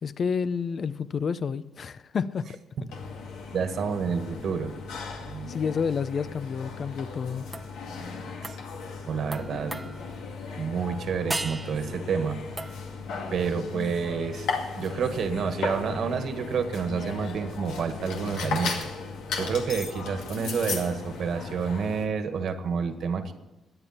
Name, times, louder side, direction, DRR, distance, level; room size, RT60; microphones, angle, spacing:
voice 1, 0.0-2.5 5.5-7.4, left 6 dB, 50° left, 0.7 m, -29 dB
sound 1, 2.9-22.1, left 4 dB, 90° left, 2.3 m, -36 dB
voice 2, 3.5-4.7 5.2-5.5 8.4-8.6 9.0-9.8 10.6-12.7 13.3-14.5 14.8-18.9 19.4-23.3, right 6 dB, 65° right, 1.7 m, -29 dB
sound 2, 7.5-7.8 8.4-8.7 9.3-10.2 11.3-12.0 12.6-13.0 14.8-14.9, right 2 dB, 15° right, 0.8 m, -36 dB
22.5 x 9.0 x 4.4 m
cardioid pair, 90°, 0 cm